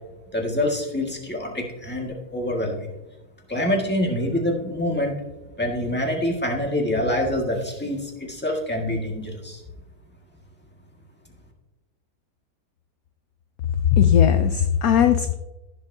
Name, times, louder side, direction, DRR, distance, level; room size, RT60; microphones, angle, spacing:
voice 1, 0.3-2.9 3.5-5.1 5.6-9.6, left 1 dB, 5° left, 0 dB, 1.6 m, -26 dB
voice 2, 13.9-15.3, left 9 dB, 70° left, 9 dB, 0.9 m, -18 dB
16.0 x 7.2 x 2.7 m, 1.0 s
omnidirectional pair, 1.9 m